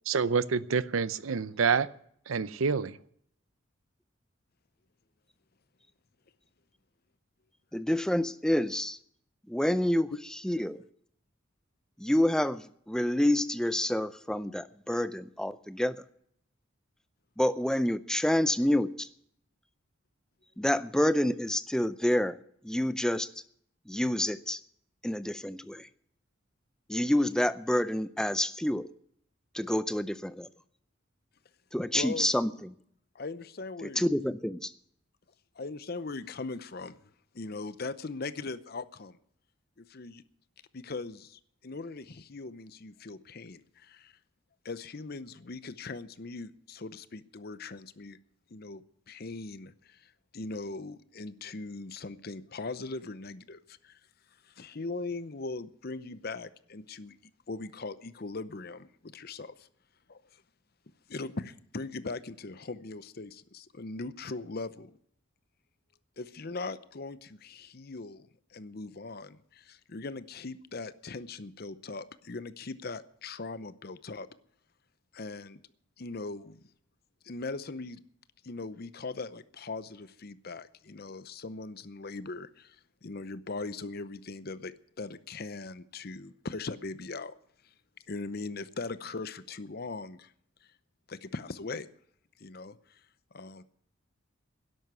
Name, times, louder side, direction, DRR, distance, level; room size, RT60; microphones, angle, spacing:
voice 1, 0.1-1.9 2.3-3.0, right 5 dB, 85° right, 0.6 m, -27 dB
voice 2, 7.7-9.0 9.5-10.1 10.4-10.8 12.0-16.0 17.4-19.1 20.6-22.4 22.6-23.3 23.9-24.6 25.0-25.9 26.9-28.9 29.5-30.5 31.7-32.5 34.0-34.7, left 1 dB, 5° left, 0.5 m, -28 dB
voice 3, 31.9-32.3 33.1-34.0 35.5-37.0 37.3-39.2 39.8-40.2 40.7-44.1 44.6-48.2 48.5-54.0 54.4-57.2 57.5-59.7 60.1-60.4 61.1-64.9 66.2-74.3 75.1-75.6 76.0-76.6 77.2-78.0 78.4-82.8 83.0-87.3 88.1-90.3 91.1-91.9 92.4-93.0 93.3-93.6, left 3 dB, 50° left, 0.7 m, -40 dB
12.5 x 11.0 x 8.1 m
head